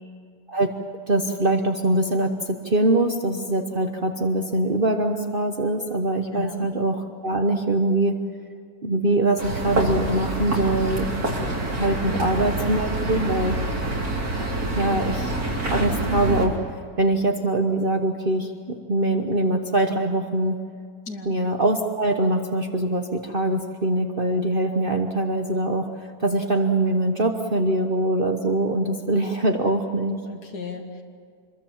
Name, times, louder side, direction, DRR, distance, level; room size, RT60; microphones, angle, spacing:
voice 1, 1.1-8.2 8.8-11.1 11.7-13.6 14.1-15.3 15.7-20.6 21.2-25.9 26.2-30.2, right 1 dB, 40° right, 4 dB, 1.3 m, -23 dB
voice 2, 6.3-6.7 12.1-12.3 21.1-21.3 24.7-24.8 30.3-31.0, left 4 dB, 85° left, 2 dB, 2.3 m, -36 dB
sound 1, 9.4-16.5, right 2 dB, 75° right, 3.9 m, -26 dB
26.5 x 22.0 x 7.4 m, 2.1 s
omnidirectional pair, 1.6 m